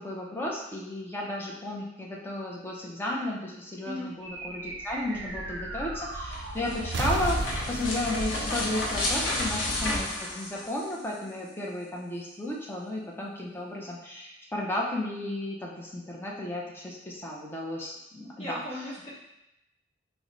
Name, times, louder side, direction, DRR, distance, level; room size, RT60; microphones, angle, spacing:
voice 1, 0.0-18.6, left 1 dB, 10° left, -3 dB, 0.4 m, -34 dB
sound 1, 4.2-9.9, right 2 dB, 65° right, 0.4 m, -36 dB
sound 2, 6.2-11.2, left 1 dB, 80° left, 0.6 m, -31 dB
voice 2, 9.2-9.7 18.4-19.1, left 1 dB, 30° left, -7 dB, 1.0 m, -38 dB
3.1 x 2.1 x 3.7 m, 0.90 s
head